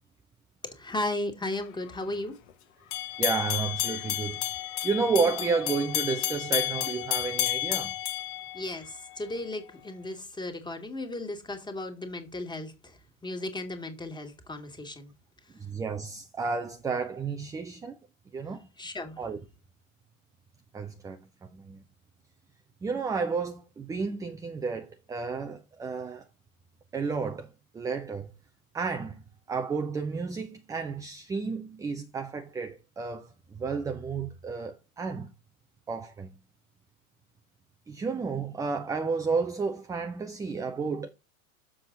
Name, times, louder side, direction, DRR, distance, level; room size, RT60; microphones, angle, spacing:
voice 1, 0.7-2.4 8.5-15.1 18.8-19.2, left 2 dB, 10° left, 2.0 m, -35 dB
sound 1, 2.9-9.1, left 14 dB, 50° left, 1.3 m, -31 dB
voice 2, 3.2-4.4 4.8-7.9 15.6-18.0 18.3-18.6 19.2-19.4 20.7-21.2 21.5-21.8 22.8-26.2 26.9-28.3 28.7-29.2 29.5-35.3 35.9-36.3 37.9-41.1, right 5 dB, 10° right, 0.5 m, -31 dB
7.2 x 6.1 x 3.8 m
figure-of-eight pair, 90°, 43 cm